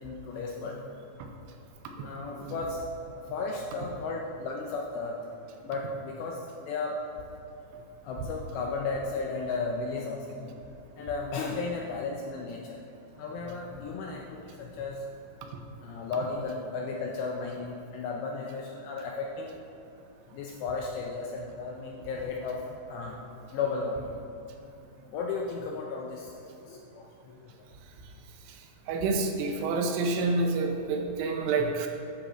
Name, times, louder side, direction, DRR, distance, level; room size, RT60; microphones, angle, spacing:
voice 1, 0.0-0.8 2.0-5.2 5.6-6.4 6.7-7.0 8.0-12.6 13.2-15.0 15.8-19.5 20.3-23.2 23.5-24.2 24.5-24.6 25.0-27.4 31.6-31.7, left 4 dB, 80° left, -1 dB, 2.5 m, -34 dB
voice 2, 28.9-31.9, right 3 dB, 80° right, 3 dB, 3.4 m, -28 dB
10.5 x 7.4 x 4.4 m, 2.9 s
omnidirectional pair, 5.7 m